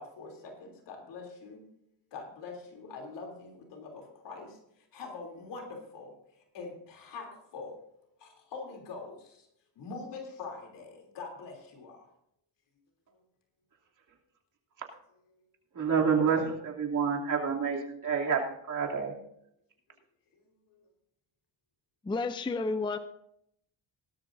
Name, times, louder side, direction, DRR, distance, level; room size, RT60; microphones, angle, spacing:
voice 1, 0.0-1.6 2.1-7.8 8.2-9.5 9.7-12.1 13.1-13.2 15.3-15.5 19.9-20.0 20.3-20.9, left 4 dB, 75° left, 2 dB, 3.2 m, -44 dB
voice 2, 15.7-18.4 18.7-19.1, right 6 dB, 45° right, 0 dB, 2.9 m, -28 dB
voice 3, 22.1-23.0, left 3 dB, 10° left, 10 dB, 0.5 m, -31 dB
18.0 x 12.5 x 2.6 m, 0.74 s
cardioid pair, 105°, 42 cm